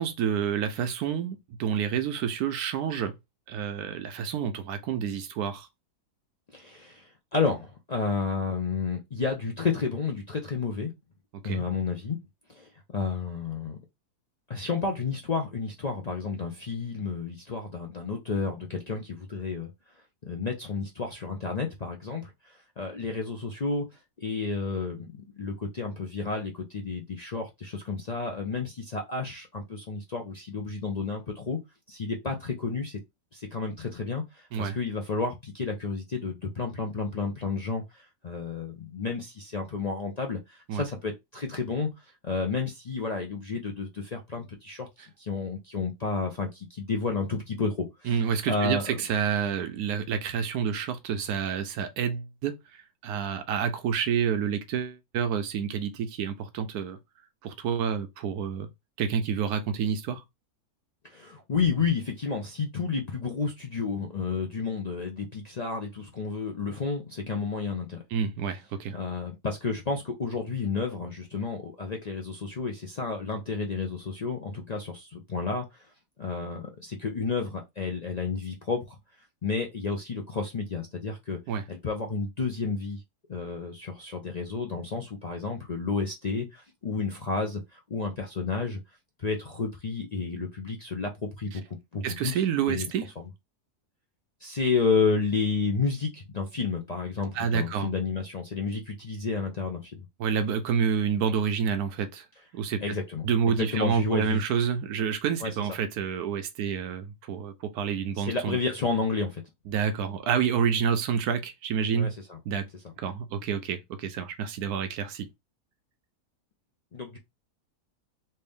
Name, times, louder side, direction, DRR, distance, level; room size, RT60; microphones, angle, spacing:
voice 1, 0.0-3.1 3.5-5.7 11.3-11.7 34.5-34.8 40.7-40.8 48.0-52.6 53.0-57.0 57.4-58.7 59.0-60.2 68.1-69.0 81.5-81.6 91.5-91.6 92.0-93.1 97.3-97.9 100.2-102.2 102.5-103.0 103.2-108.6 109.7-112.1 112.5-112.7 113.0-115.3, right 7 dB, 80° right, 1.1 m, -28 dB
voice 2, 6.5-10.9 11.4-12.2 12.5-13.8 14.5-19.7 20.2-23.8 24.2-31.6 31.9-33.0 33.3-48.2 48.5-49.0 61.0-68.0 68.9-75.9 76.2-79.0 79.4-81.4 81.7-83.0 83.3-88.8 89.2-92.4 92.7-92.9 93.2-93.3 94.4-100.1 102.8-103.3 103.6-104.5 105.4-105.7 108.2-109.4 111.9-112.4 116.9-117.2, left 4 dB, 65° left, 0.4 m, -31 dB
3.3 x 2.7 x 3.5 m
omnidirectional pair, 1.6 m